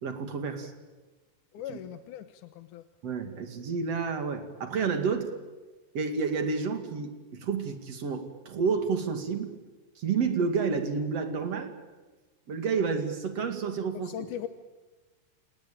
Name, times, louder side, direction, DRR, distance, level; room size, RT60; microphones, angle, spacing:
voice 1, 0.0-0.7 1.7-1.8 3.0-5.3 5.9-9.5 10.0-11.7 12.5-14.1, right 5 dB, 45° right, 7 dB, 3.2 m, -30 dB
voice 2, 1.5-2.8 14.0-14.5, left 10 dB, 70° left, 10 dB, 2.3 m, -39 dB
29.5 x 18.0 x 8.9 m, 1.3 s
omnidirectional pair, 4.1 m